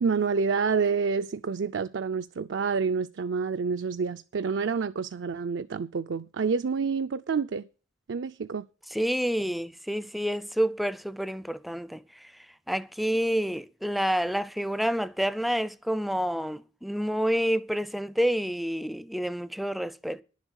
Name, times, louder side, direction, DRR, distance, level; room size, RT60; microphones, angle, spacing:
voice 1, 0.0-7.6 8.1-8.6, right 5 dB, 70° right, 0.4 m, -28 dB
voice 2, 8.9-12.3 12.7-20.2, equal, ahead, 0.4 m, -28 dB
11.0 x 7.4 x 6.3 m
head